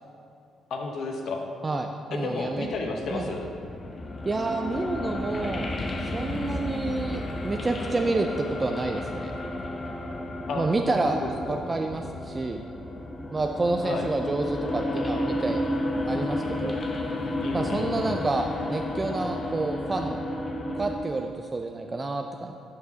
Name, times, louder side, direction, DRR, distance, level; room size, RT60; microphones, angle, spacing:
voice 1, 0.7-1.4 2.1-3.5 10.5-10.6 11.0-11.7 13.8-14.1 17.4-18.2, left 3 dB, 70° left, 2 dB, 0.9 m, -32 dB
voice 2, 1.6-2.7 3.1-3.2 4.2-5.7 6.0-9.4 10.6-11.2 11.5-12.6 13.3-15.6 16.1-16.8 17.5-20.2 20.7-22.6, right 3 dB, 25° right, 3 dB, 0.3 m, -29 dB
sound 1, 2.5-21.0, left 1 dB, 35° left, 0.7 m, -32 dB
11.5 x 4.7 x 2.8 m, 2.5 s
cardioid pair, 90°, 0 cm